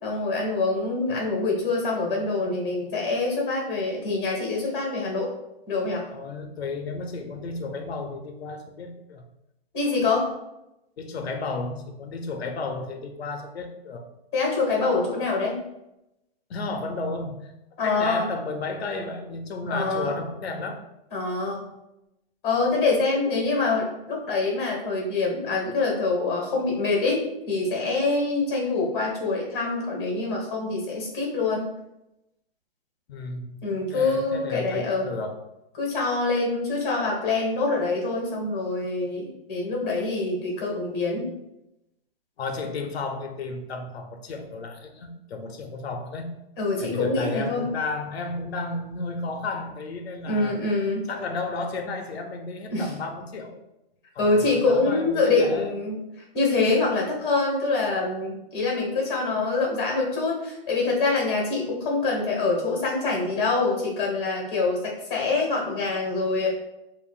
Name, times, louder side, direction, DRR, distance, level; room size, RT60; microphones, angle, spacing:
voice 1, 0.0-5.3 5.7-6.0 9.7-10.3 14.3-15.5 17.8-18.3 19.7-20.1 21.1-21.6 22.4-31.7 33.6-35.1 35.7-41.3 46.6-47.7 50.3-51.0 52.7-52.9 54.2-56.0 56.3-66.5, left 3 dB, 25° left, -2 dB, 1.3 m, -25 dB
voice 2, 6.1-9.2 11.0-14.1 16.5-17.5 17.8-20.9 33.1-35.4 42.4-46.3 46.8-50.6 51.1-53.6 54.1-55.7, left 3 dB, 90° left, 5 dB, 0.7 m, -33 dB
7.2 x 2.5 x 2.4 m, 0.90 s
hypercardioid pair, 175°, 30 cm